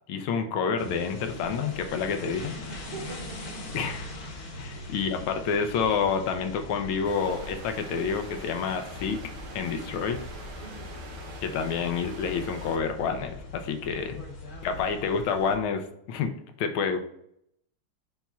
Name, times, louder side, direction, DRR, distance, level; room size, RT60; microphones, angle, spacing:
voice 1, 0.1-2.5 3.7-4.1 4.6-9.2 9.5-10.2 11.4-14.2 14.6-16.3 16.6-17.0, left 6 dB, 80° left, 6 dB, 1.5 m, -28 dB
sound 1, 0.8-15.6, left 2 dB, 55° left, 1.3 m, -41 dB
voice 2, 2.9-3.9 4.7-4.9 10.6-11.1 14.6-14.8, right 4 dB, 65° right, -2 dB, 0.5 m, -45 dB
sound 2, 7.0-12.8, right 3 dB, 80° right, 1.7 m, -44 dB
7.2 x 5.5 x 2.3 m, 0.73 s
omnidirectional pair, 2.3 m